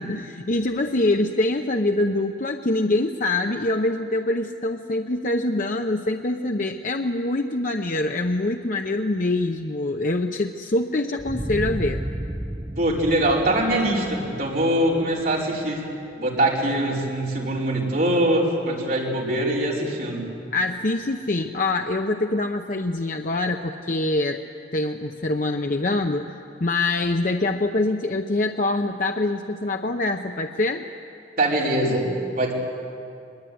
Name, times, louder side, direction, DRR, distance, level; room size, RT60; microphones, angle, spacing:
voice 1, 0.0-12.0 20.5-24.4 24.7-30.9, left 2 dB, 50° left, 4 dB, 0.8 m, -24 dB
sound 1, 11.2-15.8, right 1 dB, 20° right, 1.0 m, -33 dB
voice 2, 12.8-15.8 16.2-20.3 31.4-32.5, right 1 dB, 55° right, -4 dB, 5.2 m, -23 dB
22.5 x 21.5 x 9.5 m, 2.5 s
head